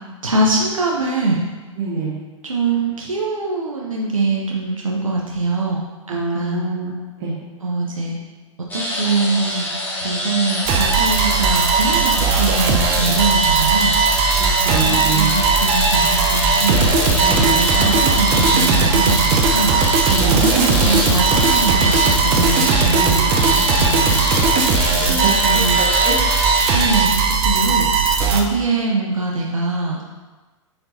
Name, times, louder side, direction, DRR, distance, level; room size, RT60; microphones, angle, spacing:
voice 1, 0.2-1.4 2.4-5.8 6.1-6.8 7.6-8.1 8.7-9.7 10.0-14.0 14.7-24.3 24.9-25.8 26.7-30.0, right 3 dB, 90° right, -2 dB, 0.7 m, -23 dB
voice 2, 1.8-2.1 6.1-6.9 7.2-7.3 14.4-15.3 17.2-17.6 20.1-20.4 22.9-23.7 25.2-26.1, right 5 dB, 50° right, -7 dB, 1.6 m, -25 dB
sound 1, 8.7-27.0, left 1 dB, 10° left, 1.5 m, -26 dB
sound 2, 10.7-28.4, right 4 dB, 35° right, 0.8 m, -17 dB
sound 3, 14.7-26.1, left 7 dB, 75° left, 0.6 m, -31 dB
7.7 x 4.4 x 2.7 m, 1.3 s
figure-of-eight pair, 100°, 17 cm